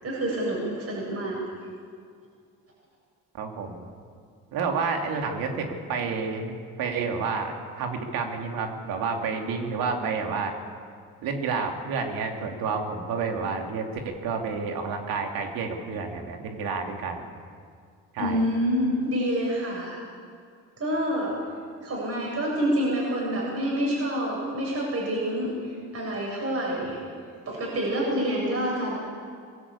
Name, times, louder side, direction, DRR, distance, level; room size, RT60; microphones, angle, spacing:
voice 1, 0.0-1.4 18.2-20.0 20.8-21.4 21.8-27.0 27.5-29.0, equal, 40° right, -4 dB, 7.7 m, -27 dB
voice 2, 3.3-3.9 4.5-10.5 11.2-17.2 18.1-18.4, right 5 dB, 75° right, 3 dB, 2.9 m, -30 dB
21.5 x 16.0 x 8.5 m, 2.2 s
supercardioid pair, 75°, 36 cm